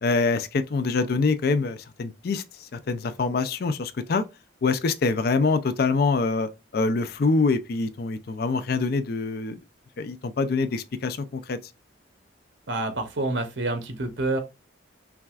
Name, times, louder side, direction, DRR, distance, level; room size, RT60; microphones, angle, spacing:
voice 1, 0.0-4.2 4.6-9.6 10.0-11.6, left 4 dB, 50° left, 0.4 m, -25 dB
voice 2, 12.7-14.4, right 2 dB, 65° right, 0.7 m, -27 dB
5.7 x 2.4 x 2.3 m
head